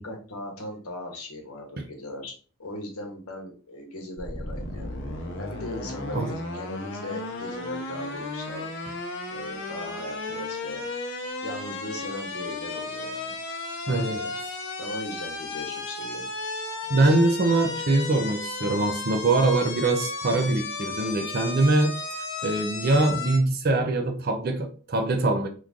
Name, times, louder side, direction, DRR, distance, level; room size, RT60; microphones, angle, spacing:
voice 1, 0.0-2.3 2.6-5.0 5.4-8.7 9.3-10.8 11.4-13.4 13.9-14.3 14.8-16.3, left 1 dB, 85° left, 1.0 m, -38 dB
sound 1, 4.2-23.4, left 3 dB, 55° left, 0.7 m, -34 dB
voice 2, 13.9-14.2 16.9-22.0 22.4-25.5, right 2 dB, 45° right, 0.5 m, -23 dB
3.1 x 2.5 x 3.5 m
head